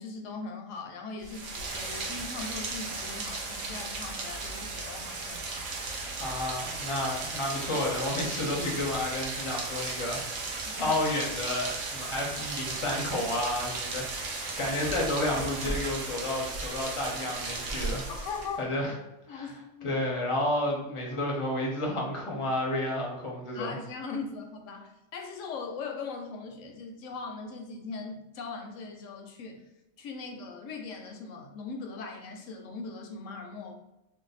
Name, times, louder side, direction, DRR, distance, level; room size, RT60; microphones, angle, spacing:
voice 1, 0.0-5.5 10.7-10.9 18.1-18.7 19.3-20.1 23.5-29.6 30.0-33.7, left 4 dB, 80° left, 3 dB, 0.9 m, -40 dB
Rain, 1.2-18.6, right 3 dB, 80° right, 1.0 m, -35 dB
voice 2, 6.2-18.1 18.6-18.9 19.3-19.5 19.8-23.8, left 1 dB, 35° left, -1 dB, 0.5 m, -31 dB
2.6 x 2.2 x 4.0 m, 0.90 s
omnidirectional pair, 1.3 m